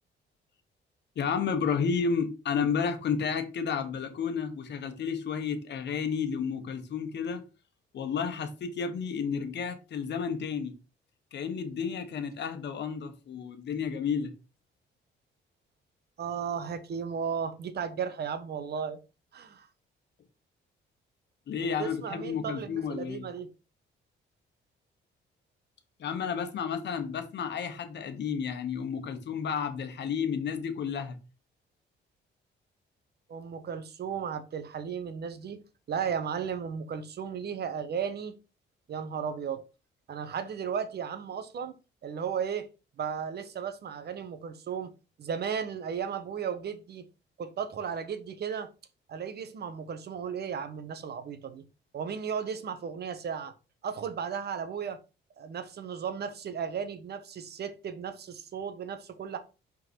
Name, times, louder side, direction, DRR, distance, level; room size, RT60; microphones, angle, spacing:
voice 1, 1.2-7.4 7.9-10.7 11.3-14.3 21.5-23.3 26.0-31.2, left 6 dB, 60° left, 1.2 m, -31 dB
voice 2, 16.2-19.0 19.3-19.7 21.6-23.5 33.3-35.6 35.9-38.3 38.9-39.6 40.1-41.7 42.0-42.7 43.0-44.9 45.2-47.1 47.4-48.7 49.1-51.7 51.9-53.5 53.8-55.0 55.4-59.4, right 7 dB, 55° right, 1.0 m, -35 dB
5.3 x 4.0 x 4.5 m
cardioid pair, 90°, 20 cm